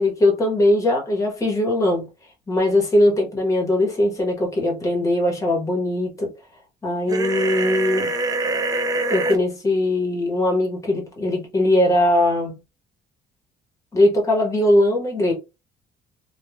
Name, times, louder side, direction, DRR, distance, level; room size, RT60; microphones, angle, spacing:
voice 1, 0.0-2.1 2.5-6.3 6.8-8.1 9.1-12.6 13.9-15.3, left 1 dB, 15° left, 1.1 m, -20 dB
sound 1, 7.1-9.4, right 2 dB, 20° right, 0.3 m, -24 dB
3.0 x 2.3 x 2.3 m
cardioid pair, 150°, 19 cm